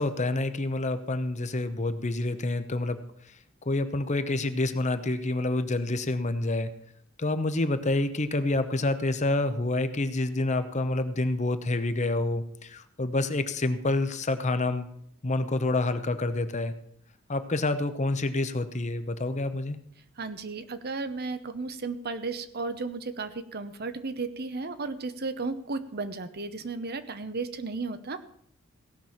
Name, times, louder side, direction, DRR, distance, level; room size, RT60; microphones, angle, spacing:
voice 1, 0.0-3.0 3.7-6.7 7.2-14.9 15.2-16.7 17.3-19.8, left 2 dB, 35° left, 10 dB, 0.8 m, -28 dB
voice 2, 20.2-28.3, right 3 dB, 45° right, 12 dB, 0.8 m, -34 dB
16.5 x 6.0 x 7.2 m, 0.67 s
head